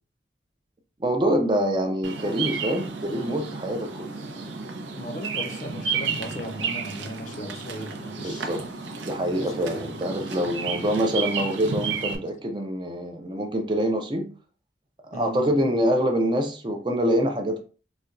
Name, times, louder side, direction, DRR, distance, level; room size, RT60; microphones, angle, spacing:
voice 1, 1.0-4.3 8.2-8.6 9.0-14.3 15.1-17.6, equal, 25° right, 0.4 m, -25 dB
Bird vocalization bird call bird song, 2.0-12.2, right 5 dB, 90° right, 0.6 m, -32 dB
voice 2, 4.9-8.7 9.4-9.9 15.1-15.5, equal, 40° left, 0.5 m, -37 dB
4.0 x 2.2 x 2.5 m
head